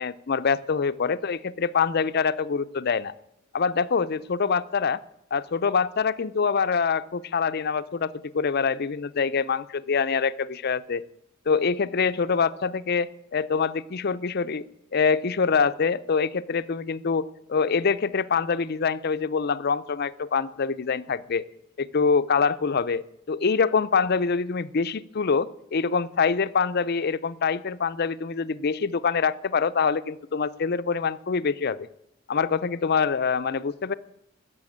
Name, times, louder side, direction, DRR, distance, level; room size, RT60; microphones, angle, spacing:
voice 1, 0.0-3.1 3.5-5.0 5.3-11.0 11.5-14.6 14.9-21.4 21.8-23.0 23.3-31.9 32.3-33.9, left 5 dB, 50° left, 14 dB, 0.5 m, -25 dB
15.5 x 6.9 x 8.6 m, 0.79 s
head